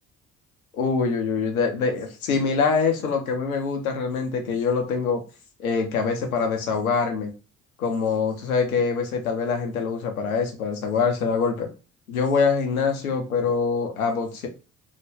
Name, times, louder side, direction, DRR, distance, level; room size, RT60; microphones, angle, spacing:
voice 1, 0.7-5.2 5.6-7.3 7.8-11.7 12.1-14.5, left 5 dB, 90° left, 4 dB, 0.7 m, -24 dB
3.5 x 2.2 x 3.3 m, 0.32 s
hypercardioid pair, 50°, 41 cm